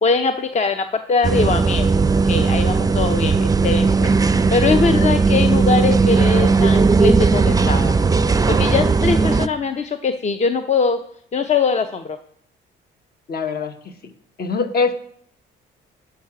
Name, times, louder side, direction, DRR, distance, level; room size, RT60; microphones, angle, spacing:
voice 1, 0.0-1.9 2.3-8.0 8.5-11.0 11.3-12.2, left 5 dB, 35° left, 8 dB, 0.6 m, -22 dB
sound 1, 1.2-9.5, right 4 dB, 20° right, 0.5 m, -17 dB
voice 2, 13.3-13.7 14.4-14.9, left 4 dB, 50° left, 7 dB, 1.1 m, -22 dB
11.0 x 4.9 x 5.9 m, 0.65 s
cardioid pair, 90°, 20 cm